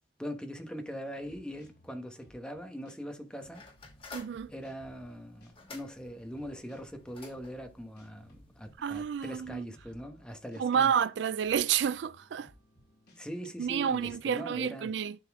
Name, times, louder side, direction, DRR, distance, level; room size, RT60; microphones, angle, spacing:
voice 1, 0.2-3.6 4.5-10.9 13.2-14.9, equal, 5° left, 1.2 m, -41 dB
sound 1, 0.9-14.4, equal, 60° left, 4.2 m, -61 dB
sound 2, 3.5-9.4, left 4 dB, 30° left, 2.5 m, -53 dB
voice 2, 4.1-4.5 8.8-9.7 10.6-12.5 13.6-15.2, right 8 dB, 75° right, 0.3 m, -29 dB
11.5 x 4.2 x 3.6 m
head